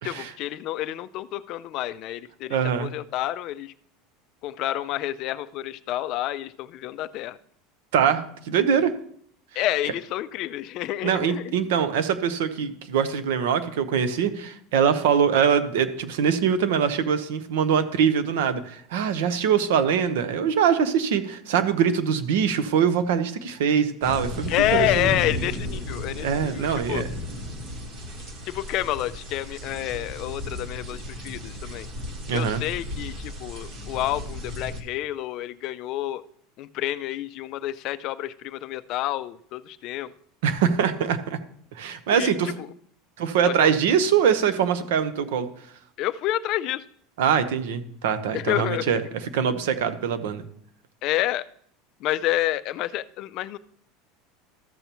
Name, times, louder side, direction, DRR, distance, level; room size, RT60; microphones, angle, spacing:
voice 1, 0.0-3.7 4.4-7.4 9.6-11.6 24.5-27.0 28.5-31.9 32.3-36.2 36.6-40.1 42.1-42.3 42.6-42.7 43.5-43.7 46.0-46.8 48.3-48.9 51.0-51.5 52.0-53.6, left 14 dB, 40° left, 13 dB, 0.4 m, -29 dB
voice 2, 2.5-2.9 7.9-8.9 11.0-25.1 26.2-27.0 32.3-32.6 40.4-41.4 41.7-42.5 43.2-45.5 47.2-49.0 49.3-50.4, right 7 dB, 80° right, 11 dB, 0.9 m, -23 dB
sound 1, 24.0-34.8, left 1 dB, 35° right, 1.3 m, -34 dB
13.5 x 6.8 x 3.0 m, 0.64 s
supercardioid pair, 170°, 0 cm